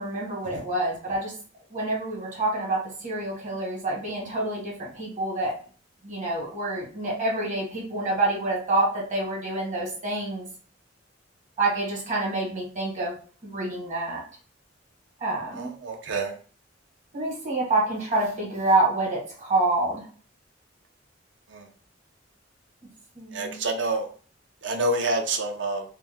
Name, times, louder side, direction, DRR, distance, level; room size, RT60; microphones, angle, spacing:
voice 1, 0.0-1.3 1.7-5.5 6.0-10.5 11.6-13.2 13.4-14.2 15.2-15.7 17.1-20.1 23.2-23.6, right 2 dB, 40° right, -2 dB, 1.2 m, -27 dB
voice 2, 15.6-16.3 21.5-21.6 23.3-24.1 24.6-25.8, right 2 dB, 70° right, 4 dB, 0.6 m, -27 dB
2.9 x 2.1 x 3.4 m, 0.42 s
head